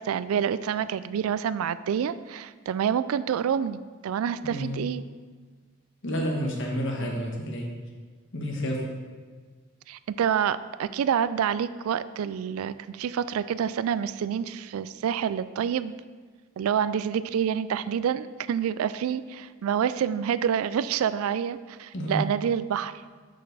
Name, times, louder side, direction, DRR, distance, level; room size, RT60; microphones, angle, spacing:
voice 1, 0.0-5.0 9.9-15.9 16.6-23.0, right 8 dB, 80° right, 15 dB, 0.3 m, -27 dB
voice 2, 4.4-4.8 6.0-7.7 8.3-8.9 21.9-22.2, equal, 60° left, 1 dB, 1.3 m, -30 dB
6.6 x 6.4 x 4.0 m, 1.5 s
head